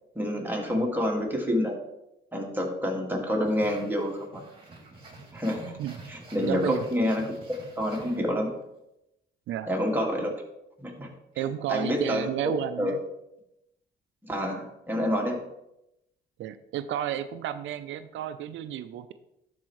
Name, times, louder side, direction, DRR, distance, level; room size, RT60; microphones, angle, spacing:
voice 1, 0.2-1.8 2.3-4.4 5.3-5.7 6.1-7.3 7.8-8.5 9.7-10.3 10.8-11.1 11.7-12.3 12.8-12.9 14.2-15.4, equal, 10° right, -1 dB, 1.9 m, -28 dB
sound 1, 3.4-8.6, right 2 dB, 25° right, 2.3 m, -48 dB
voice 2, 6.4-6.8 9.5-9.7 10.3-10.4 11.4-13.0 16.4-19.1, right 10 dB, 75° right, 11 dB, 0.5 m, -32 dB
11.5 x 4.6 x 3.1 m, 0.87 s
cardioid pair, 90°, 20 cm